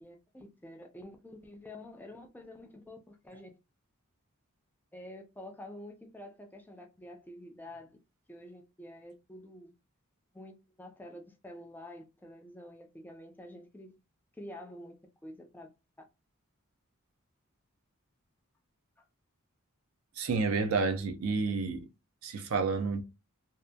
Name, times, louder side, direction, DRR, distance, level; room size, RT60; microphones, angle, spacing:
voice 1, 0.0-3.6 4.9-8.0 8.3-9.7 10.3-14.0 14.4-15.7 19.0-19.1, left 1 dB, 10° left, 0.4 m, -48 dB
voice 2, 20.2-21.9 22.2-23.0, right 4 dB, 75° right, 0.6 m, -30 dB
2.7 x 2.4 x 2.2 m
head